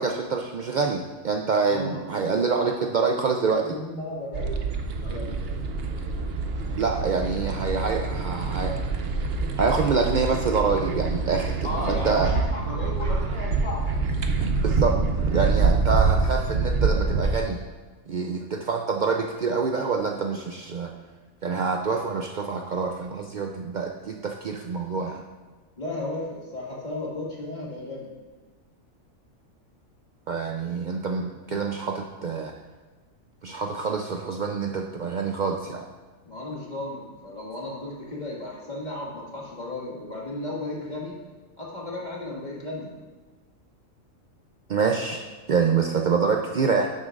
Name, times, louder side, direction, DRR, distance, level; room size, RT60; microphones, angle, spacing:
voice 1, 0.0-3.7 6.7-8.8 9.6-12.3 14.6-15.0 15.3-17.6 18.1-20.9 21.4-25.2 30.3-32.5 33.4-35.9 44.7-45.2 45.5-46.9, right 5 dB, 85° right, 2 dB, 0.4 m, -26 dB
voice 2, 1.7-2.1 2.6-3.3 3.6-4.6 5.0-5.5 11.6-13.9 25.8-28.1 36.3-41.2 41.6-42.9, left 2 dB, 30° left, -5 dB, 2.0 m, -34 dB
sound 1, 4.3-17.4, right 4 dB, 55° right, 0.8 m, -26 dB
11.5 x 7.8 x 2.5 m, 1.3 s
omnidirectional pair, 1.4 m